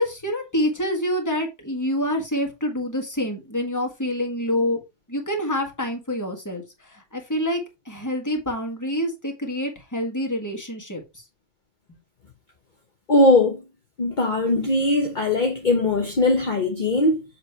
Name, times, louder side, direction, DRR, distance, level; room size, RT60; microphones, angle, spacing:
voice 1, 0.0-4.8 5.1-11.0, equal, 15° left, 1.6 m, -27 dB
voice 2, 13.1-13.6 14.0-17.2, left 2 dB, 45° left, 1.1 m, -20 dB
7.7 x 3.2 x 4.4 m
omnidirectional pair, 1.2 m